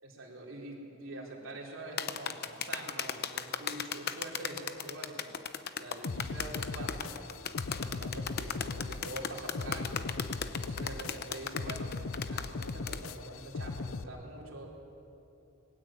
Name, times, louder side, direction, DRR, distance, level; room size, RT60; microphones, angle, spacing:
voice 1, 0.0-5.2 5.8-7.2 7.7-10.0 10.5-11.9 12.3-14.7, right 1 dB, 65° right, -3 dB, 3.9 m, -45 dB
sound 1, 2.0-13.0, left 7 dB, 50° left, 0.8 m, -36 dB
sound 2, 6.0-14.0, left 3 dB, 80° left, 0.7 m, -39 dB
20.0 x 16.0 x 8.9 m, 2.9 s
head